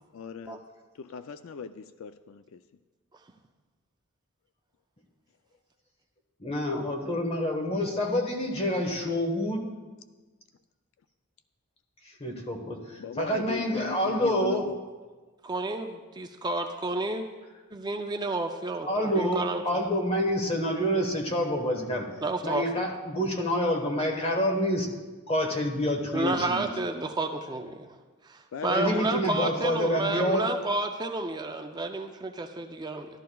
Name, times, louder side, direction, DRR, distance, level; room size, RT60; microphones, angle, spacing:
voice 1, 0.1-0.6 1.0-2.6 13.0-14.8 28.5-29.3 29.6-29.7, left 6 dB, 70° left, 11 dB, 0.4 m, -37 dB
voice 2, 6.4-9.6 12.0-14.7 18.9-22.1 22.4-24.9 25.3-26.6 28.7-30.5, equal, 30° left, 2 dB, 1.1 m, -27 dB
voice 3, 15.4-17.3 17.7-19.6 22.2-22.6 26.1-27.9 28.2-33.1, right 2 dB, 20° right, 5 dB, 0.4 m, -31 dB
14.0 x 11.5 x 2.3 m, 1.3 s
head